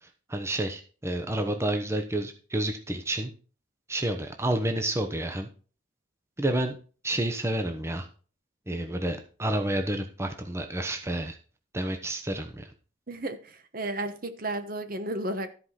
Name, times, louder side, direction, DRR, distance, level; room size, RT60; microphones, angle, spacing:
voice 1, 0.0-3.3 3.9-5.5 6.4-6.8 7.0-8.1 8.7-11.4 11.7-12.7, right 1 dB, 15° right, 5 dB, 0.9 m, -30 dB
voice 2, 13.1-15.5, right 1 dB, 45° right, 9 dB, 1.1 m, -33 dB
13.5 x 4.9 x 5.8 m, 0.39 s
head